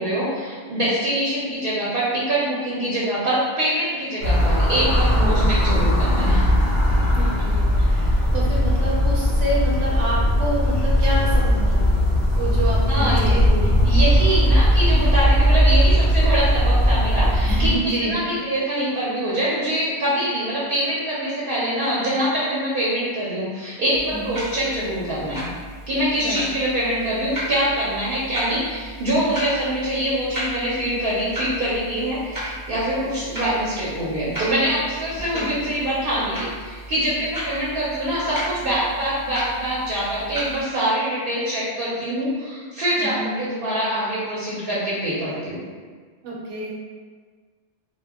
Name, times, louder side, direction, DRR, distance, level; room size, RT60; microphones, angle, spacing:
voice 1, 0.0-6.5 12.9-13.4 13.8-17.7 18.0-25.5 25.9-45.6, right 1 dB, 60° right, -9 dB, 0.8 m, -24 dB
sound 1, 4.2-17.7, equal, 50° left, 0.7 m, -18 dB
voice 2, 5.1-5.5 7.1-12.1 12.3-13.9 17.5-18.1 24.1-24.4 26.2-26.4 35.3-35.5 43.0-43.3 46.2-46.7, right 1 dB, 85° right, -5 dB, 1.0 m, -28 dB
sound 2, 23.9-40.6, equal, 20° right, 0.6 m, -35 dB
2.1 x 2.1 x 3.3 m, 1.6 s
omnidirectional pair, 1.1 m